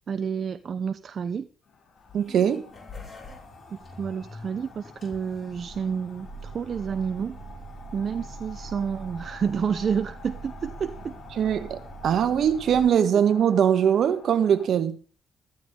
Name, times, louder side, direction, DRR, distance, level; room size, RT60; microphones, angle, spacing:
voice 1, 0.1-1.5 3.7-7.4 7.9-11.2, right 7 dB, 50° right, 0.7 m, -30 dB
sound 1, 1.6-14.7, left 5 dB, 60° left, 6.4 m, -49 dB
sound 2, 2.0-12.8, right 2 dB, 35° left, 5.7 m, -43 dB
voice 2, 2.1-2.6 11.3-15.0, right 8 dB, 65° right, 1.4 m, -22 dB
14.5 x 14.0 x 3.8 m
cardioid pair, 90°, 0 cm